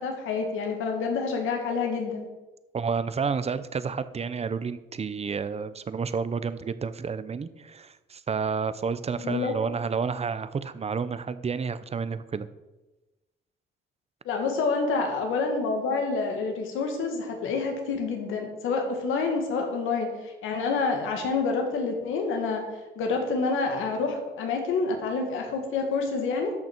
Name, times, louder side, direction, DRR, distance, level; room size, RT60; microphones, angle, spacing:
voice 1, 0.0-2.3 9.2-9.5 14.3-22.6 23.0-26.5, left 4 dB, 85° left, 3 dB, 2.0 m, -28 dB
voice 2, 2.7-12.5, right 5 dB, 30° right, 13 dB, 0.7 m, -30 dB
13.5 x 6.0 x 4.5 m, 1.1 s
cardioid pair, 90°, 20 cm